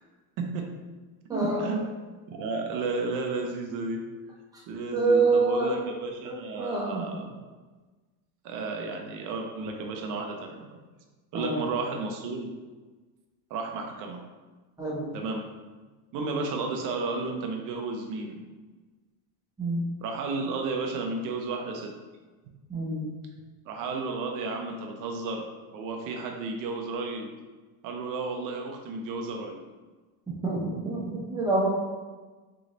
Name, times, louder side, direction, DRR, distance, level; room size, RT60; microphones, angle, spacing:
voice 1, 0.4-0.7 1.3-4.1 4.7-7.4 8.4-10.8 11.3-12.5 13.5-14.2 15.1-15.5 16.1-18.4 20.0-21.9 23.7-27.3 27.8-29.6, right 3 dB, 45° right, 3 dB, 0.6 m, -33 dB
voice 2, 1.3-1.8 4.9-5.8 6.2-7.0 11.3-11.6 14.8-15.1 19.6-19.9 22.7-23.1 30.4-31.7, right 3 dB, 10° right, -5 dB, 0.7 m, -26 dB
3.8 x 3.4 x 3.8 m, 1.3 s
cardioid pair, 165°, 47 cm